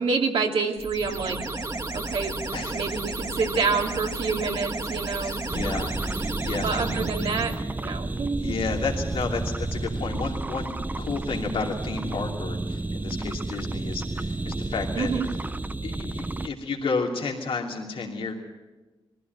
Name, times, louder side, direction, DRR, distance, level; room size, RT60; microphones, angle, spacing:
voice 1, 0.0-1.4 1.9-2.3 2.7-5.4 6.6-8.5 14.9-15.3, right 4 dB, 80° right, 1 dB, 2.6 m, -27 dB
sound 1, 0.8-7.6, right 2 dB, 40° right, 1.9 m, -33 dB
voice 2, 5.2-6.9 8.4-15.1 15.8-18.3, left 4 dB, 80° left, 0 dB, 2.8 m, -32 dB
sound 2, 5.5-16.5, right 2 dB, 20° right, 0.6 m, -31 dB
21.0 x 15.0 x 9.4 m, 1.2 s
cardioid pair, 70°, 9 cm